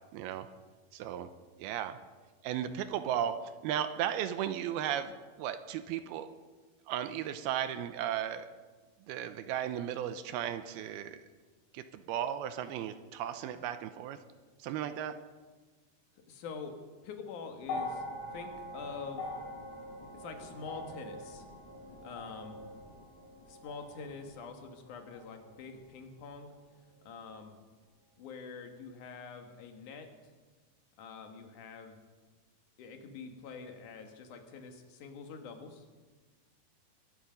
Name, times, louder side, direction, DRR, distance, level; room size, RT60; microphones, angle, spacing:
voice 1, 0.1-0.5 0.9-1.3 1.6-2.0 2.4-6.3 6.9-8.5 9.1-11.2 11.7-14.2 14.6-15.2, right 10 dB, 80° right, 10 dB, 2.5 m, -35 dB
voice 2, 16.3-18.0 18.3-19.3 20.1-21.5 22.0-22.6 23.5-26.5 27.0-27.6 28.2-30.1 31.0-32.0 32.8-35.9, left 5 dB, 60° left, 5 dB, 2.7 m, -45 dB
sound 1, 17.6-26.0 27.0-27.1, left 2 dB, 80° left, 5.9 m, -44 dB
23.5 x 11.5 x 5.2 m, 1.4 s
omnidirectional pair, 4.7 m